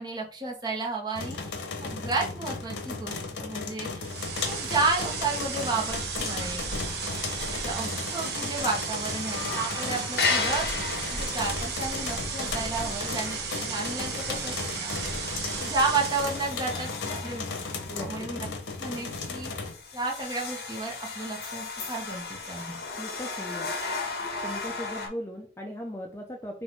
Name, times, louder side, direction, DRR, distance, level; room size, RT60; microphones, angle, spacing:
voice 1, 0.0-4.1 4.4-6.7 7.5-15.3 15.5-17.5 18.0-18.5 18.8-22.8, right 3 dB, 25° right, -1 dB, 1.1 m, -32 dB
sound 1, 1.2-19.7, left 4 dB, 90° left, 0.8 m, -35 dB
sound 2, 4.0-16.5, right 5 dB, 65° right, 1.0 m, -34 dB
sound 3, 9.0-14.2 14.6-14.9 15.4-15.5 15.9-25.1, left 4 dB, 60° left, 1.1 m, -35 dB
voice 2, 17.9-18.3 23.0-23.7 24.4-26.6, equal, 15° left, 1 dB, 0.5 m, -38 dB
4.2 x 2.6 x 4.5 m, 0.42 s
head